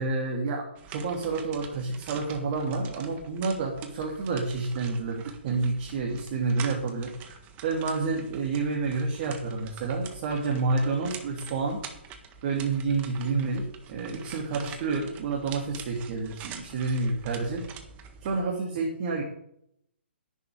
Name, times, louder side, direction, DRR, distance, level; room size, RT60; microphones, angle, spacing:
voice 1, 0.0-7.4 7.6-11.8 12.4-13.6 13.9-17.6 18.2-19.2, right 4 dB, 40° right, -1 dB, 2.9 m, -29 dB
sound 1, 0.8-18.5, right 7 dB, 25° right, 1.6 m, -46 dB
11.0 x 6.7 x 9.1 m, 0.74 s
figure-of-eight pair, 130°, 6 cm